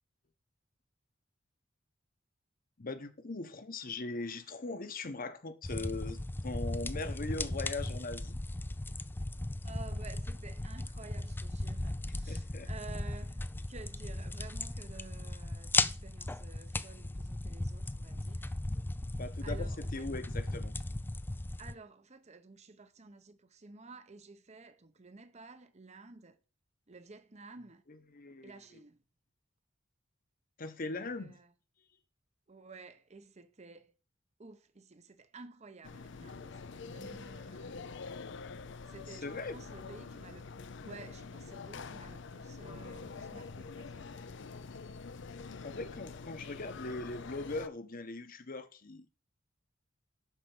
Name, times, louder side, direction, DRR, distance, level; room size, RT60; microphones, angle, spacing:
voice 1, 2.8-8.4 12.3-12.7 19.1-20.7 28.1-28.5 30.6-31.4 39.1-39.6 45.6-49.2, left 3 dB, 45° left, 1.1 m, -40 dB
sound 1, 5.6-21.7, left 2 dB, 10° left, 0.4 m, -37 dB
voice 2, 9.6-18.6 19.4-20.1 21.6-26.4 26.9-27.8 28.4-29.0 30.9-31.5 32.5-33.9 34.4-37.8 38.9-40.5 40.8-44.2, right 3 dB, 35° right, 0.9 m, -52 dB
sound 2, 35.8-47.7, left 4 dB, 65° left, 0.6 m, -46 dB
11.5 x 4.6 x 6.1 m
head